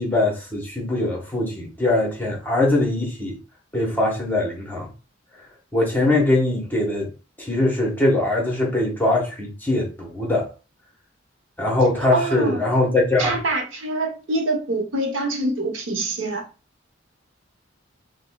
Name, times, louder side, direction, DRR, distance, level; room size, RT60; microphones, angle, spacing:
voice 1, 0.0-3.4 3.7-4.9 5.7-7.1 7.4-10.5 11.6-13.3, left 2 dB, 10° left, 0.9 m, -22 dB
voice 2, 12.1-12.7 13.2-16.4, right 2 dB, 80° right, 0.8 m, -25 dB
4.9 x 2.1 x 2.2 m
head